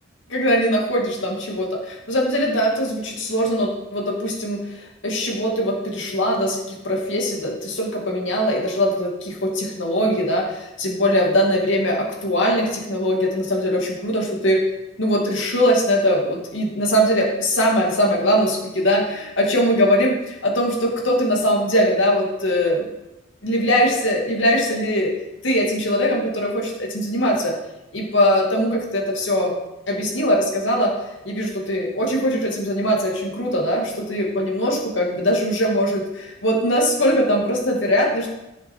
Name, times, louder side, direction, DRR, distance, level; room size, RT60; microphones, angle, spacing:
voice 1, 0.3-14.6 15.0-22.9 23.4-25.1 25.4-27.5 27.9-29.5 29.9-30.9 31.2-38.3, equal, 75° left, -1 dB, 2.4 m, -21 dB
11.0 x 7.0 x 4.6 m, 0.95 s
head